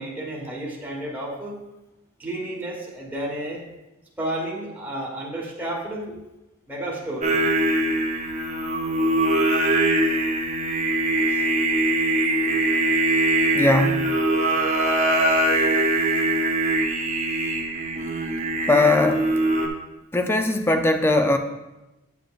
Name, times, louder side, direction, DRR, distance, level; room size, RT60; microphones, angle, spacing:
voice 1, 0.0-1.6 2.2-3.6 4.2-6.1 6.7-7.3, right 1 dB, 10° right, -4 dB, 1.2 m, -31 dB
Singing, 7.2-19.7, right 1 dB, 30° right, 0.8 m, -22 dB
voice 2, 13.5-14.2 18.7-19.3 20.1-21.4, left 2 dB, 10° left, 7 dB, 0.4 m, -20 dB
9.0 x 6.9 x 2.4 m, 1.0 s
head